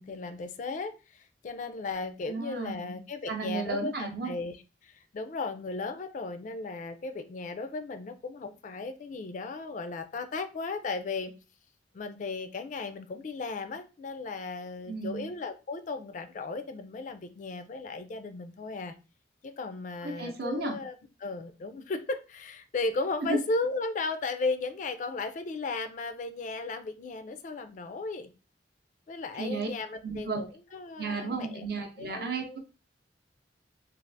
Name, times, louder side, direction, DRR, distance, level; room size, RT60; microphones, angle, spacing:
voice 1, 0.0-4.6 4.8-11.3 11.9-18.9 19.4-20.9 21.2-28.3 29.1-31.7 32.0-32.6, left 3 dB, 40° left, 9 dB, 0.3 m, -35 dB
voice 2, 2.3-3.0 3.3-4.3 14.9-15.3 20.0-20.8 23.3-23.4 29.3-29.7 30.0-30.4 31.0-32.6, right 3 dB, 55° right, 3 dB, 0.6 m, -33 dB
3.3 x 2.4 x 2.5 m, 0.32 s
head